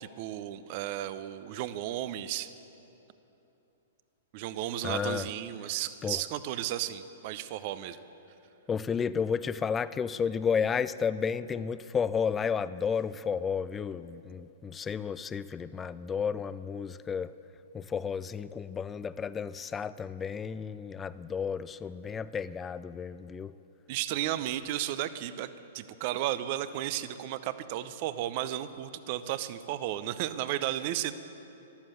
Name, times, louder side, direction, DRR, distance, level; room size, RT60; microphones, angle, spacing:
voice 1, 0.0-2.5 4.3-8.0 23.9-25.5 25.7-31.1, right 12 dB, 45° right, 13 dB, 0.7 m, -34 dB
voice 2, 4.8-5.3 6.0-6.2 8.7-17.3 17.7-23.5, left 6 dB, 15° left, 16 dB, 0.4 m, -32 dB
13.0 x 11.5 x 7.8 m, 3.0 s
hypercardioid pair, 125°, 0 cm